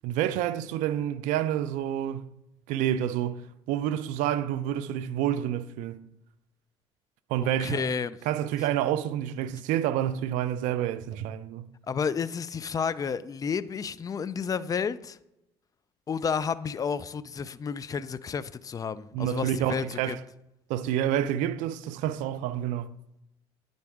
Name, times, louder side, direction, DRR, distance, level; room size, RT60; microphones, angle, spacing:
voice 1, 0.0-2.3 2.7-6.0 7.3-7.9 8.3-11.7 19.1-20.2 20.7-22.9, right 11 dB, 70° right, 0.5 m, -28 dB
voice 2, 7.6-8.2 11.9-15.2 16.1-20.2, left 6 dB, 25° left, 0.4 m, -31 dB
9.5 x 3.9 x 3.5 m
hypercardioid pair, 65°, 14 cm